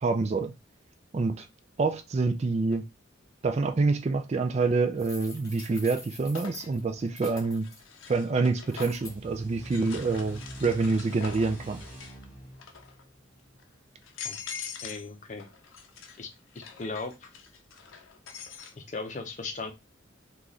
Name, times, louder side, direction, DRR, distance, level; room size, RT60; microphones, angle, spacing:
voice 1, 0.0-0.5 1.1-1.5 1.8-2.9 3.4-7.7 8.1-11.8, right 3 dB, 35° right, 0.3 m, -27 dB
sound 1, 2.7-2.8 4.5-5.0 5.4-9.1 9.6-12.2 12.5-13.0 13.6-13.7 14.0-15.1 15.4-18.7, left 7 dB, 80° left, 0.6 m, -44 dB
sound 2, 5.0-7.8 8.7-9.1, left 3 dB, 15° left, 1.1 m, -45 dB
sound 3, 8.7-14.0, equal, 10° right, 1.2 m, -45 dB
voice 2, 14.8-15.5 16.2-16.3 16.5-17.3 18.7-19.7, left 3 dB, 40° left, 0.6 m, -37 dB
3.1 x 2.3 x 3.9 m
head